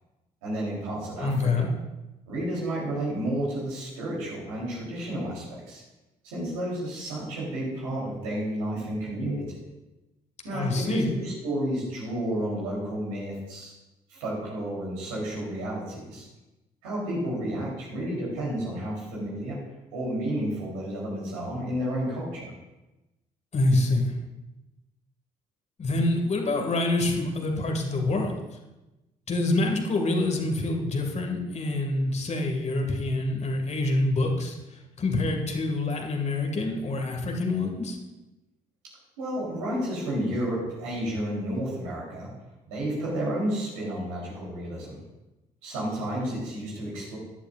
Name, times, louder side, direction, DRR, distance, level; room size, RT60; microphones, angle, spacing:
voice 1, 0.4-1.7 2.3-5.8 6.2-9.6 10.4-13.7 14.1-16.3 16.8-19.6 19.9-22.5 39.2-42.3 42.7-45.0 45.6-47.2, right 1 dB, 75° right, -4 dB, 3.5 m, -31 dB
voice 2, 1.2-1.7 10.5-11.1 23.5-24.1 25.8-28.3 29.3-34.6 35.0-38.0, left 2 dB, 40° left, 3 dB, 1.9 m, -26 dB
13.5 x 11.0 x 2.5 m, 1.0 s
figure-of-eight pair, 45°, 18 cm